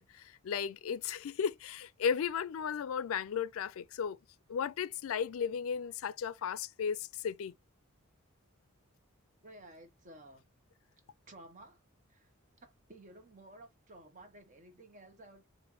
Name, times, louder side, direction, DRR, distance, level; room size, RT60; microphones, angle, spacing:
voice 1, 0.0-4.2 4.5-7.5, left 7 dB, 80° left, 0.4 m, -35 dB
voice 2, 9.4-10.4 11.3-11.8 12.1-12.3 12.6-15.5, right 1 dB, 35° right, 0.9 m, -54 dB
5.2 x 2.5 x 3.1 m
head